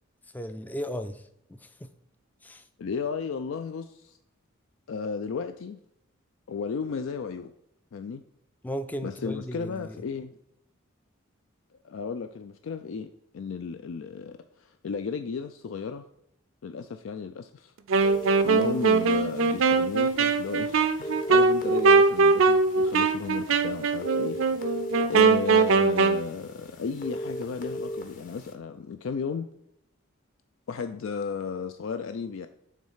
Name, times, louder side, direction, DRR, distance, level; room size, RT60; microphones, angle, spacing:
voice 1, 0.3-1.2 1.5-1.9 2.4-2.6 8.6-9.9, equal, 10° left, 0.3 m, -35 dB
voice 2, 2.8-4.2 4.9-5.8 6.5-7.5 7.9-8.2 9.0-10.4 11.7-13.1 13.3-16.0 16.6-17.7 18.4-29.5 30.7-32.5, left 5 dB, 75° left, 0.4 m, -34 dB
sound 1, 17.9-28.5, equal, 40° left, 0.8 m, -39 dB
Wind instrument woodwind instrument, 17.9-26.2, right 4 dB, 80° right, 0.5 m, -22 dB
7.3 x 3.2 x 5.5 m
head